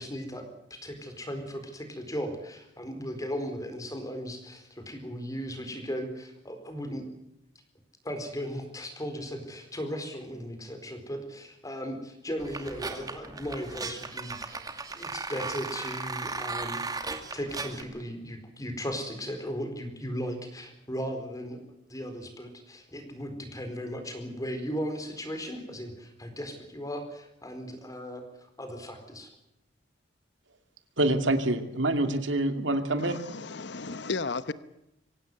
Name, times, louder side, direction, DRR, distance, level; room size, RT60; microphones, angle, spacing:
voice 1, 0.0-7.0 8.0-14.6 14.9-16.8 17.3-21.6 21.9-28.2 28.6-29.3, equal, 20° left, 4.3 m, -37 dB
sound 1, 12.4-17.8, right 3 dB, 20° right, 2.4 m, -36 dB
voice 2, 31.0-33.2, right 1 dB, 80° right, 2.6 m, -26 dB
voice 3, 33.0-34.5, left 4 dB, 65° left, 1.0 m, -34 dB
25.0 x 17.0 x 7.9 m
head